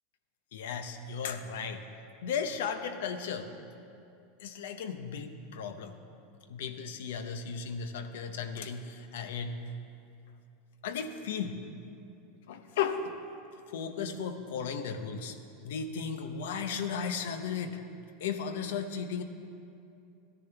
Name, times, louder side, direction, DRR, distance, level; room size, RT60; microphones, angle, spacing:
voice 1, 0.5-1.8 2.2-3.5 4.4-6.0 6.5-9.6 10.8-11.6 12.5-13.1 13.7-15.4 15.6-17.8 18.2-19.2, left 6 dB, 80° left, 8 dB, 0.8 m, -35 dB
15.0 x 10.0 x 3.4 m, 2.6 s
supercardioid pair, 120°, 0 cm